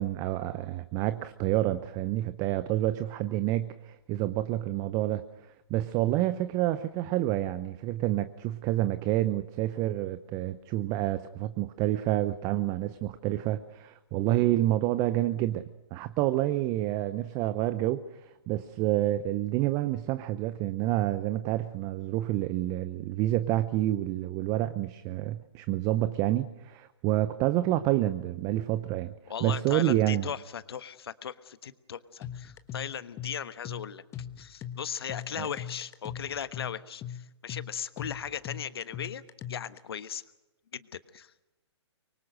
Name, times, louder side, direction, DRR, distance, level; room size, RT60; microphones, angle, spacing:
voice 1, 0.0-5.2 5.7-29.1 29.4-30.3 35.4-35.5, right 14 dB, 25° right, 14 dB, 0.7 m, -28 dB
voice 2, 29.3-34.0 34.4-39.2 39.5-40.2 40.7-41.3, left 8 dB, 55° left, 13 dB, 1.3 m, -37 dB
sound 1, 32.2-39.8, left 9 dB, 20° left, 1.2 m, -40 dB
25.0 x 24.0 x 6.4 m, 0.99 s
figure-of-eight pair, 130°, 15 cm